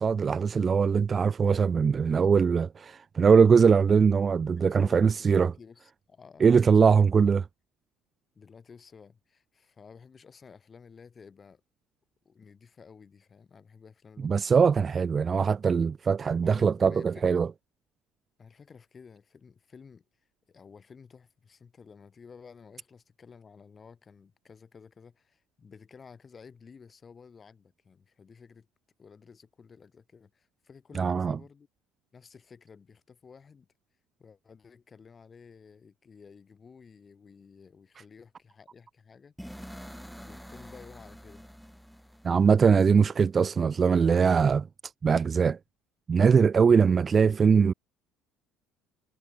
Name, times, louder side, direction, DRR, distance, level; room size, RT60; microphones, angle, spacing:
voice 1, 0.0-5.5 6.4-7.4 14.2-17.5 30.9-31.4 42.2-44.7 45.0-45.6 46.1-47.7, right 6 dB, 25° right, 0.4 m, -22 dB
voice 2, 1.4-1.9 4.6-7.1 8.3-11.6 12.2-14.6 16.4-17.5 18.4-20.0 20.5-28.7 29.0-31.7 32.1-33.7 34.2-39.3 40.2-41.5, left 5 dB, 20° left, 6.1 m, -52 dB
sound 1, 39.4-43.3, equal, ahead, 1.8 m, -47 dB
cardioid pair, 160°, 0 cm